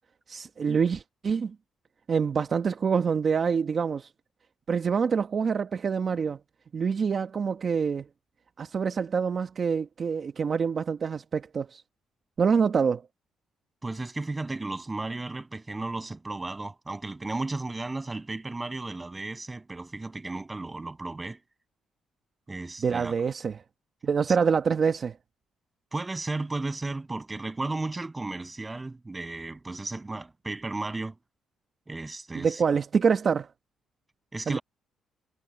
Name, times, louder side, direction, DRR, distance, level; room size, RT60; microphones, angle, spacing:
voice 1, 0.3-1.5 2.1-4.1 4.7-6.4 6.7-8.1 8.6-11.8 12.4-13.0 22.8-23.5 24.0-25.2 32.3-33.5 34.5-34.6, right 6 dB, 45° right, 1.1 m, -26 dB
voice 2, 13.8-21.4 22.5-23.1 24.3-24.4 25.9-31.1 31.9-32.6 34.3-34.6, right 2 dB, 20° right, 7.2 m, -34 dB
cardioid pair, 90°, 0 cm